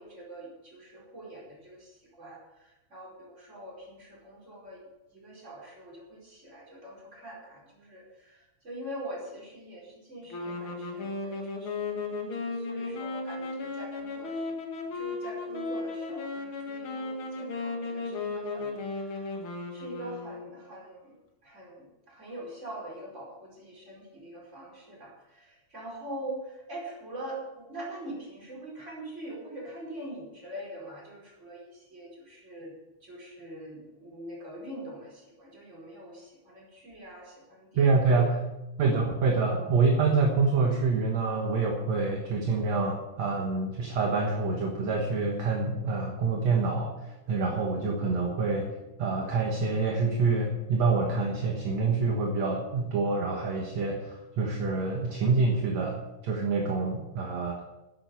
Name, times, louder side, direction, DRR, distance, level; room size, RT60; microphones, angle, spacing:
voice 1, 0.0-4.8 5.1-14.6 14.9-19.3 19.7-21.2 21.4-32.7 33.0-37.9 38.3-38.4, right 1 dB, 15° right, -3 dB, 4.6 m, -43 dB
sound 1, 10.3-20.7, left 3 dB, 45° left, 2.0 m, -35 dB
voice 2, 37.8-38.4 38.8-46.9 47.3-48.7 49.0-57.6, right 4 dB, 55° right, 1 dB, 2.0 m, -26 dB
11.5 x 10.5 x 7.0 m, 0.97 s
omnidirectional pair, 4.7 m